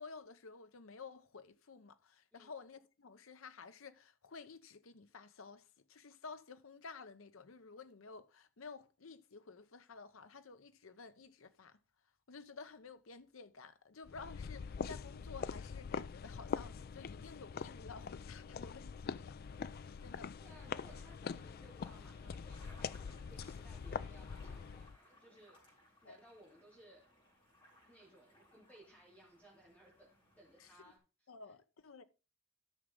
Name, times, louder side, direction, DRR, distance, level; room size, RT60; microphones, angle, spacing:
voice 1, 0.0-11.8 12.3-19.4 20.0-20.3 26.0-26.2 30.6-30.7 31.3-32.0, left 4 dB, 80° left, 0.8 m, -53 dB
sound 1, 14.1-25.0, left 6 dB, 50° left, 0.4 m, -44 dB
sound 2, 19.4-31.0, left 1 dB, 25° left, 4.4 m, -66 dB
voice 2, 20.4-25.6 26.0-27.0 27.8-30.1 30.4-31.0, right 1 dB, 10° left, 3.1 m, -61 dB
13.0 x 6.1 x 3.8 m
head